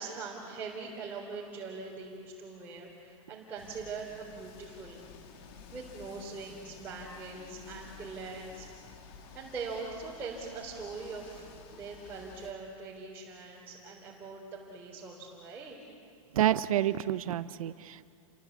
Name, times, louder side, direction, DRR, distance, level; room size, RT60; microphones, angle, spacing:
voice 1, 0.0-5.0 5.7-8.7 9.3-15.8, right 4 dB, 10° right, -6 dB, 3.9 m, -42 dB
sound 1, 3.6-12.5, left 5 dB, 45° left, 2.4 m, -51 dB
voice 2, 16.3-18.0, right 12 dB, 85° right, 13 dB, 0.9 m, -28 dB
29.0 x 23.5 x 8.3 m, 2.3 s
supercardioid pair, 160°, 18 cm